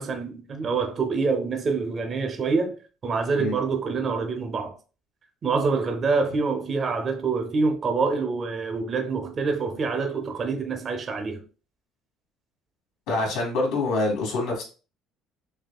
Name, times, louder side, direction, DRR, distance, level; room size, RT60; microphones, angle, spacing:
voice 1, 0.0-4.7 5.4-11.4, right 4 dB, 25° right, 0.5 m, -26 dB
voice 2, 13.1-14.6, left 2 dB, 75° left, 1.9 m, -25 dB
6.3 x 2.3 x 2.3 m
cardioid pair, 175°, 0 cm